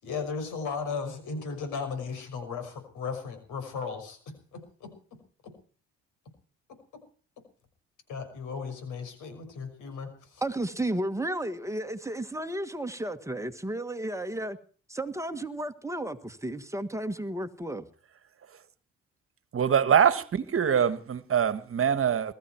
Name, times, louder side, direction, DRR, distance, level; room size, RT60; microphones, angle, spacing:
voice 1, 0.0-4.2 4.5-4.9 8.1-10.4, left 5 dB, 85° left, 5.9 m, -36 dB
voice 2, 10.4-14.6 14.9-17.9, right 1 dB, 10° right, 1.6 m, -33 dB
voice 3, 19.5-22.3, right 8 dB, 45° right, 1.5 m, -24 dB
22.0 x 14.0 x 4.5 m
cardioid pair, 90°, 30 cm